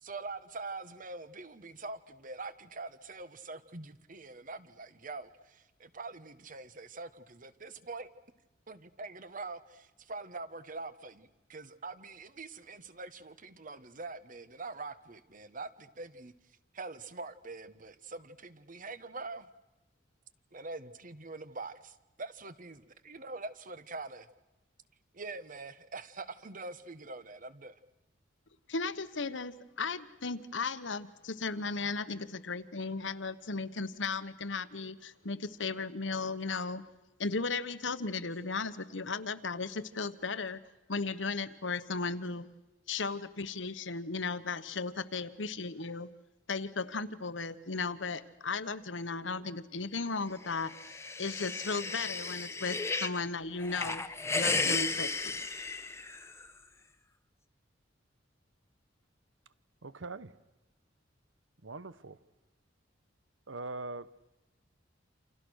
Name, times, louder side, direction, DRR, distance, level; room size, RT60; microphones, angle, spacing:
voice 1, 0.0-8.1 8.7-16.3 16.7-19.5 20.5-24.3 25.1-27.8, right 3 dB, 45° right, 1.3 m, -44 dB
voice 2, 28.7-36.8 37.2-40.6 40.9-42.5 42.9-46.1 46.5-54.1 54.3-55.4, left 4 dB, 75° left, 1.2 m, -36 dB
sound 1, 50.5-53.2 53.6-56.5, left 3 dB, 15° left, 1.1 m, -34 dB
voice 3, 59.8-60.4 61.6-62.2 63.5-64.1, right 3 dB, 85° right, 1.1 m, -42 dB
28.5 x 27.5 x 6.4 m
head